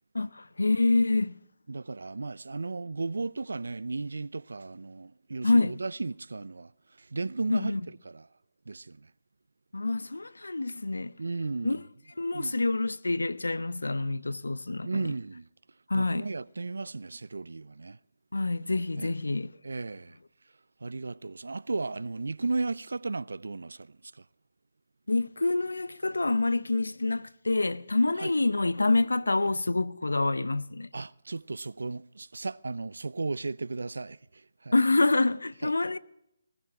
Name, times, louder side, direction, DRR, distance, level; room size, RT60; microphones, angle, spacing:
voice 1, 0.1-1.4 5.4-5.7 7.5-7.8 9.7-11.1 11.6-11.8 12.2-15.1 15.9-16.3 18.3-19.5 25.1-30.9 34.7-36.0, left 2 dB, 85° left, 0.7 m, -27 dB
voice 2, 1.7-6.7 7.0-7.8 8.1-8.3 8.7-9.1 11.2-11.8 12.3-12.6 14.8-15.5 15.9-18.0 19.0-19.2 19.6-20.2 20.8-24.2 28.2-28.3 30.9-34.7 35.6-35.7, right 3 dB, 75° right, 0.5 m, -35 dB
19.5 x 16.0 x 3.6 m
figure-of-eight pair, 150°, 0 cm